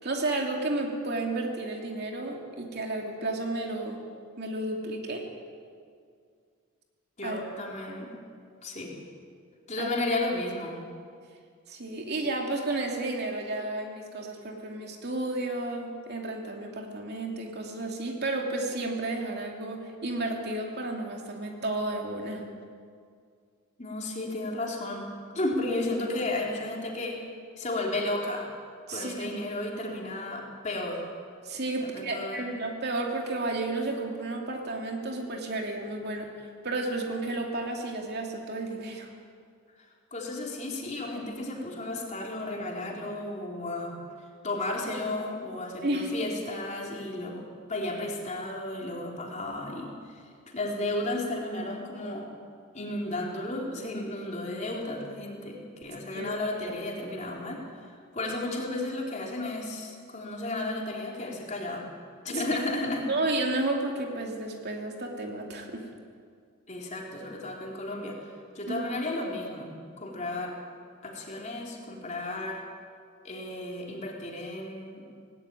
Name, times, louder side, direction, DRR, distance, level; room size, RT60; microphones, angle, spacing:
voice 1, 0.0-4.0 4.4-5.2 7.2-7.4 9.8-9.9 11.7-22.4 28.9-29.4 31.4-36.3 36.6-39.1 45.8-46.1 56.1-56.3 62.3-62.5 63.1-65.8 68.6-68.8, right 2 dB, 50° right, 1 dB, 2.8 m, -32 dB
voice 2, 7.2-8.2 8.6-8.9 9.7-10.8 23.8-27.2 27.6-28.5 28.9-31.0 31.8-32.4 40.1-43.9 44.4-50.0 50.5-52.3 52.7-61.9 62.3-63.1 66.7-68.2 68.6-70.6 71.0-72.6 73.2-75.1, left 2 dB, 35° left, -1 dB, 3.5 m, -33 dB
18.5 x 16.5 x 9.6 m, 2.2 s
head